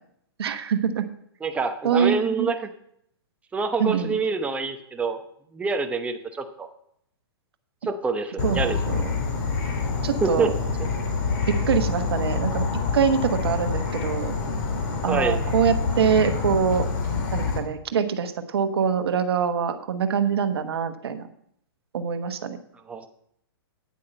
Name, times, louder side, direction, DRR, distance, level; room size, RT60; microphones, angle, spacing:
voice 1, 0.4-1.1 1.8-2.5 3.8-4.2 8.4-9.0 10.0-10.5 11.5-12.6 12.9-14.3 15.0-16.9 17.3-21.2 21.9-22.6, right 7 dB, 75° right, 9 dB, 1.2 m, -24 dB
voice 2, 1.4-2.7 3.5-5.2 5.5-6.7 7.8-8.8 10.2-10.5 15.1-15.4 22.9-23.1, right 4 dB, 10° right, 7 dB, 0.8 m, -26 dB
Insect / Frog, 8.4-17.6, left 4 dB, 50° left, 2.7 m, -26 dB
9.6 x 8.4 x 5.4 m, 0.72 s
hypercardioid pair, 140°, 13 cm